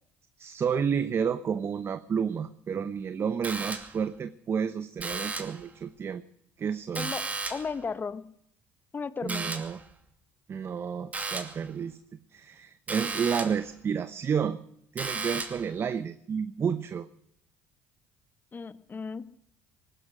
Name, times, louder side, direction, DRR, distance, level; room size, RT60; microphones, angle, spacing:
voice 1, 0.4-6.2 6.6-7.1 9.2-9.8 10.5-12.0 12.3-14.6 14.9-17.1, right 7 dB, 40° right, 11 dB, 0.9 m, -30 dB
sound 1, 3.4-4.1 5.0-5.7 6.9-7.8 9.3-9.8 11.1-11.6 12.9-13.7 15.0-15.7, right 3 dB, 25° right, 2.6 m, -34 dB
voice 2, 7.0-8.2 8.9-9.5 18.5-19.2, left 5 dB, 30° left, 13 dB, 1.2 m, -35 dB
19.5 x 11.5 x 6.3 m, 0.73 s
supercardioid pair, 70°, 6 cm